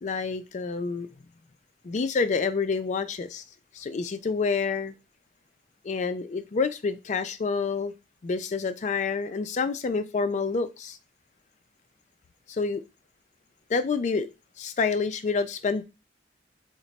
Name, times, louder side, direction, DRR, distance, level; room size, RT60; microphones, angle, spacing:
voice 1, 0.0-1.1 1.8-3.4 3.7-4.9 5.8-7.9 8.2-11.0 12.5-12.8 13.7-14.3 14.6-15.8, left 4 dB, 40° left, 10 dB, 0.3 m, -28 dB
3.0 x 2.1 x 3.9 m, 0.27 s
head